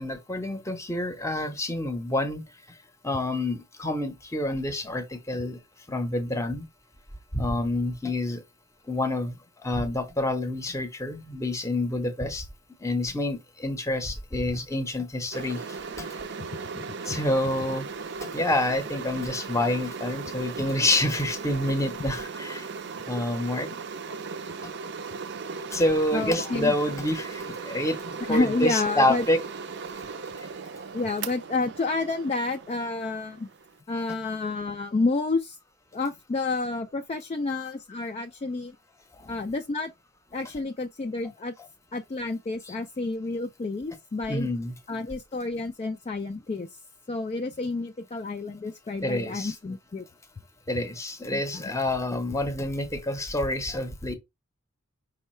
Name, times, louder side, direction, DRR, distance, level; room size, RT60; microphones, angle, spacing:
voice 1, 0.0-2.4 3.0-5.6 5.9-6.7 7.3-8.4 8.9-12.5 12.8-16.1 17.0-17.9 18.2-22.7 23.1-23.7 25.7-29.4 30.4-30.5 39.2-39.3 44.3-44.7 49.0-49.5 50.7-54.1, left 1 dB, 15° left, 0.7 m, -28 dB
sound 1, 15.3-33.8, right 5 dB, 55° right, 0.5 m, -37 dB
voice 2, 16.5-16.8 17.1-17.2 20.3-20.4 26.1-26.7 28.3-29.2 30.9-33.5 33.9-35.6 35.9-38.8 39.3-39.9 40.3-41.5 41.9-44.5 44.9-46.8 47.1-50.1 51.3-51.7, left 3 dB, 30° left, 0.3 m, -30 dB
5.4 x 2.3 x 4.2 m
head